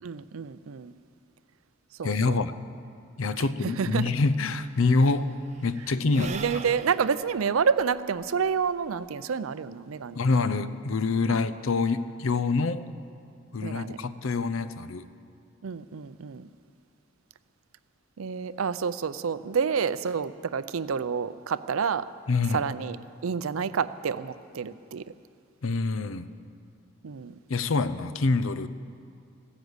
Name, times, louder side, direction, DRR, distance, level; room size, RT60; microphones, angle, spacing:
voice 1, 0.0-0.9 2.0-2.4 3.6-4.1 6.2-10.2 11.3-11.4 13.6-14.0 15.6-16.5 18.2-22.0 22.5-23.0 23.2-25.0 27.0-27.3, right 6 dB, 85° right, 15 dB, 0.5 m, -29 dB
voice 2, 2.0-2.6 3.2-5.3 5.6-6.4 10.2-12.8 13.5-15.1 22.3-22.6 25.6-26.3 27.5-28.7, left 3 dB, 75° left, 13 dB, 0.6 m, -26 dB
Sigh / Breathing, 4.0-4.1 4.3-9.1, right 5 dB, 35° right, 0.5 m, -43 dB
15.5 x 10.0 x 8.0 m, 2.4 s
head